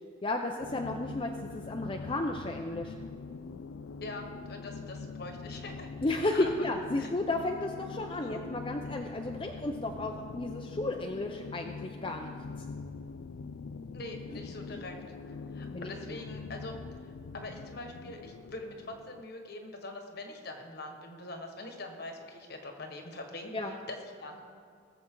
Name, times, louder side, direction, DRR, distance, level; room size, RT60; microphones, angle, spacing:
voice 1, 0.2-2.9 6.0-12.3 14.3-14.4 14.7-14.8 15.7-15.9 23.5-23.7, left 2 dB, 25° left, 2 dB, 0.6 m, -33 dB
sound 1, 0.6-19.2, left 4 dB, 90° left, 0.4 m, -43 dB
voice 2, 4.0-5.9 6.3-6.5 7.0-7.1 8.2-8.4 13.9-14.9 15.3-24.6, left 2 dB, 55° left, 3 dB, 1.5 m, -43 dB
19.5 x 7.6 x 3.8 m, 2.4 s
head